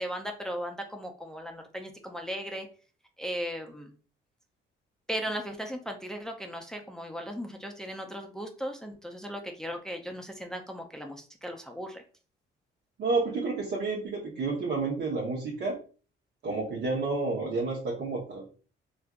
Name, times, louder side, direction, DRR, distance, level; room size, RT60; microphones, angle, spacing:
voice 1, 0.0-2.7 3.2-3.9 5.1-12.0, equal, 5° left, 3 dB, 0.5 m, -37 dB
voice 2, 13.0-15.8 16.4-18.6, right 3 dB, 60° right, -3 dB, 0.9 m, -30 dB
3.3 x 2.5 x 2.3 m, 0.38 s
cardioid pair, 90°, 20 cm